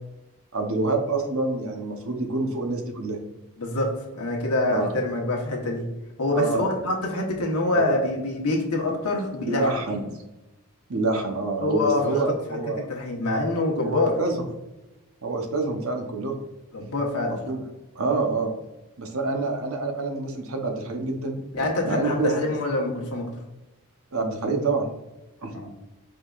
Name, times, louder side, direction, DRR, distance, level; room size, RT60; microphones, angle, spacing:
voice 1, 0.5-3.2 4.7-4.9 6.3-6.9 7.7-8.0 9.4-10.0 10.9-12.9 13.8-14.4 15.2-16.3 17.3-17.6 17.9-18.5 19.0-21.4 21.8-22.3 24.1-24.9 25.4-25.6, right 3 dB, 65° right, 4 dB, 0.8 m, -27 dB
voice 2, 3.6-5.8 6.2-9.7 11.6-12.0 12.5-12.6 12.9-14.1 16.7-17.4 21.5-23.3 25.5-25.7, left 2 dB, 85° left, 0 dB, 1.1 m, -25 dB
4.9 x 3.7 x 2.4 m, 1.0 s
head